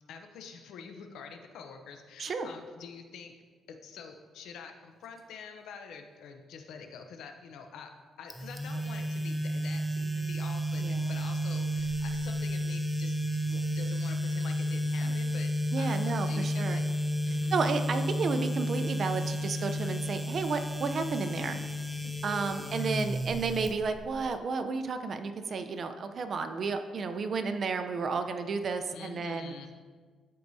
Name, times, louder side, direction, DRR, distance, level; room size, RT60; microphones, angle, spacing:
voice 1, 0.1-3.3 3.7-7.9 8.2-13.1 13.4-16.8 17.2-17.6 22.0-22.2 28.9-29.7, left 6 dB, 80° left, 5 dB, 0.7 m, -47 dB
sound 1, 8.3-24.3, equal, ahead, 0.6 m, -32 dB
voice 2, 10.8-11.1 15.0-15.1 15.7-16.8 17.5-21.6 22.2-29.5, right 4 dB, 50° right, 8 dB, 0.6 m, -32 dB
13.0 x 4.7 x 2.7 m, 1.5 s
cardioid pair, 90°, 0 cm